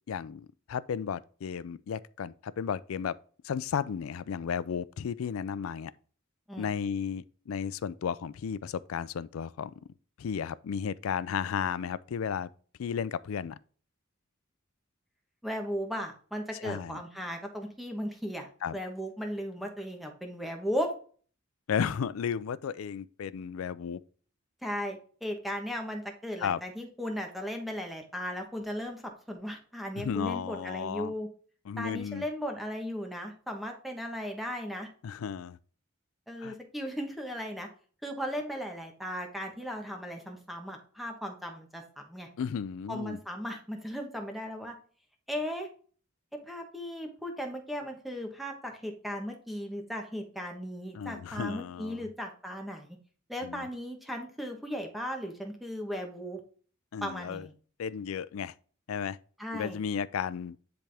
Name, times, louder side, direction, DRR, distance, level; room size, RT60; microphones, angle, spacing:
voice 1, 0.1-3.2 3.4-5.9 6.6-9.7 10.2-12.5 12.8-13.6 16.5-17.0 18.6-18.7 21.7-24.0 26.4-26.6 30.0-31.1 31.7-32.3 35.0-35.6 36.4-36.5 42.4-43.2 50.9-52.1 53.4-53.7 56.9-57.5 57.8-58.5 58.9-59.2 59.5-60.6, left 7 dB, 85° left, 0.4 m, -34 dB
voice 2, 15.4-20.9 24.6-31.3 31.8-34.9 36.3-37.7 38.0-42.3 42.9-44.7 45.3-45.7 46.5-53.0 53.3-56.4 57.0-57.5 59.4-59.8, equal, ahead, 1.2 m, -36 dB
10.0 x 3.5 x 3.4 m
head